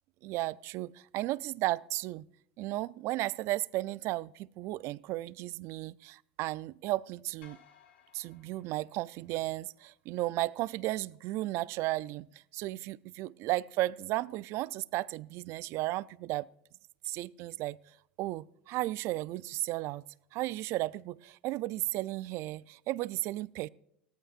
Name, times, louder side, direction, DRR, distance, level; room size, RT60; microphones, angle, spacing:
voice 1, 0.2-2.3 2.6-7.6 8.1-12.3 12.5-16.5 17.0-17.8 18.2-20.0 20.3-23.7, right 18 dB, 55° right, 20 dB, 0.4 m, -34 dB
sound 1, 7.4-9.8, left 8 dB, 80° left, 2.4 m, -61 dB
18.0 x 13.5 x 2.5 m, 0.75 s
hypercardioid pair, 95°, 6 cm